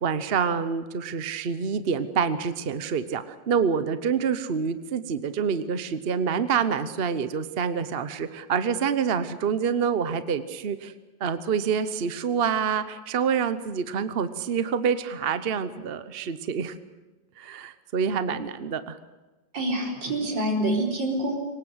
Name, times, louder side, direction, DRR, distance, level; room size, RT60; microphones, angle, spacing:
voice 1, 0.0-10.9 11.2-16.7 17.4-19.0, right 6 dB, 40° right, 12 dB, 0.9 m, -27 dB
voice 2, 19.5-21.4, right 1 dB, 75° right, 1 dB, 4.8 m, -26 dB
23.5 x 19.5 x 8.0 m, 1.2 s
omnidirectional pair, 2.0 m